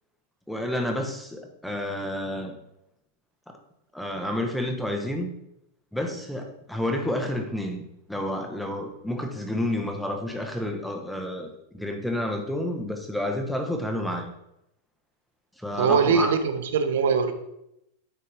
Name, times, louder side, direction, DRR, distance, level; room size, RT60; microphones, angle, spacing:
voice 1, 0.5-2.6 3.5-3.6 3.9-5.3 5.9-14.3 15.6-16.4, left 1 dB, ahead, 3 dB, 0.9 m, -30 dB
voice 2, 15.8-17.3, right 6 dB, 80° right, 9 dB, 0.8 m, -22 dB
9.3 x 4.2 x 3.4 m, 0.83 s
supercardioid pair, 140°, 0 cm